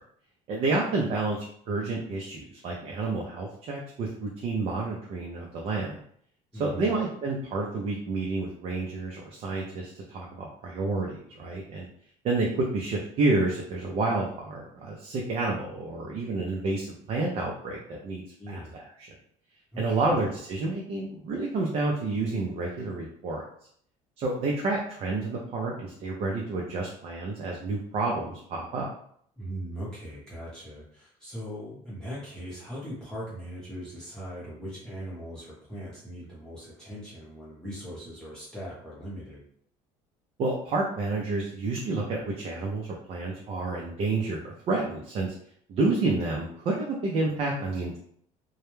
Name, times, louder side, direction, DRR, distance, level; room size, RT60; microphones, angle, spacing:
voice 1, 0.5-6.0 6.6-11.9 12.2-19.1 19.8-23.5 24.2-28.9 40.4-45.3 45.7-48.0, right 3 dB, 45° right, -1 dB, 0.4 m, -29 dB
voice 2, 6.5-6.9 18.4-18.7 19.7-20.2 29.4-39.4, equal, 5° left, -9 dB, 0.8 m, -40 dB
2.2 x 2.1 x 3.0 m, 0.65 s
cardioid pair, 140°, 14 cm